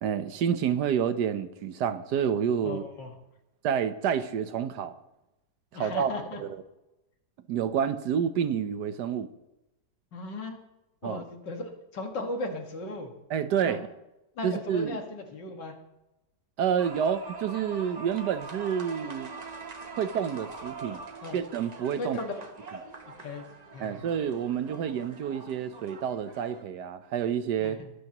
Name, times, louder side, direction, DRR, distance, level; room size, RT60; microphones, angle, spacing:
voice 1, 0.0-2.8 3.6-4.9 5.8-6.1 6.4-6.6 7.5-9.3 11.0-11.2 13.3-13.8 14.4-15.0 16.6-19.3 20.0-21.0 21.3-22.2 23.8-27.8, right 8 dB, 75° right, 11 dB, 1.3 m, -28 dB
voice 2, 2.6-3.1 5.7-6.4 10.1-10.6 11.0-13.1 13.6-13.8 14.4-15.7 21.2-21.4 22.0-22.4 23.2-24.0 27.6-27.9, left 2 dB, 80° left, 3 dB, 2.5 m, -37 dB
sound 1, 16.8-26.6, right 4 dB, 35° right, 0.7 m, -43 dB
21.0 x 12.0 x 3.0 m, 0.93 s
omnidirectional pair, 1.9 m